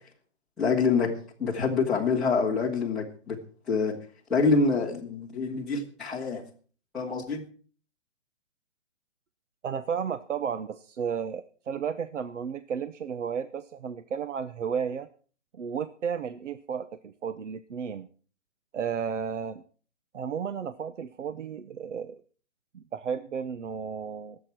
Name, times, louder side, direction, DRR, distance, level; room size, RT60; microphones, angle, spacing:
voice 1, 0.6-1.1 1.4-3.4 3.7-3.9 4.3-6.4 6.9-7.4, left 4 dB, ahead, -9 dB, 1.2 m, -26 dB
voice 2, 9.6-15.1 15.5-18.1 18.7-19.6 20.1-22.2 22.7-24.4, right 7 dB, 75° right, 12 dB, 0.9 m, -33 dB
22.0 x 8.5 x 4.5 m, 0.42 s
hypercardioid pair, 180°, 37 cm